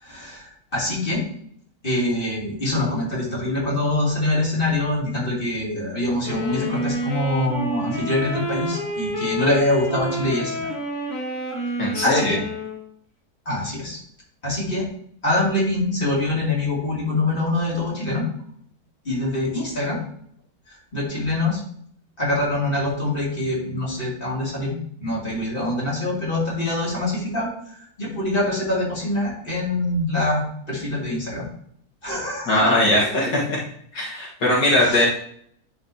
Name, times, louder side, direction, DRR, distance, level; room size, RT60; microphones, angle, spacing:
voice 1, 0.0-1.2 1.8-10.7 12.0-12.4 13.5-14.0 14.4-14.8 15.2-18.2 19.0-20.0 20.9-21.6 22.2-27.5 28.0-31.4 32.0-32.5 34.8-35.1, left 1 dB, 30° left, -5 dB, 2.9 m, -24 dB
sound 1, 6.2-12.8, equal, 15° left, 1.8 m, -29 dB
voice 2, 11.8-12.4 32.5-33.6 33.9-35.0, left 1 dB, 70° left, -5 dB, 2.0 m, -20 dB
11.0 x 5.0 x 2.8 m, 0.63 s
omnidirectional pair, 1.7 m